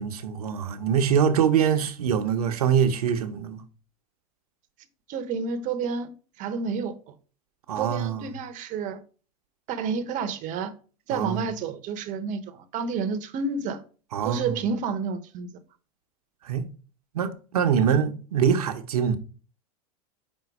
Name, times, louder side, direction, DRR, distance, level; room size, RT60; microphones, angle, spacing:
voice 1, 0.0-3.6 7.7-8.3 11.1-11.5 14.1-14.6 16.4-16.7 17.1-19.2, right 8 dB, 85° right, 0.9 m, -24 dB
voice 2, 5.1-6.1 6.4-7.0 7.8-9.0 9.7-10.7 11.1-13.8 14.2-15.5, right 5 dB, 45° right, 0.9 m, -30 dB
5.2 x 3.9 x 4.7 m
hypercardioid pair, 105°, 19 cm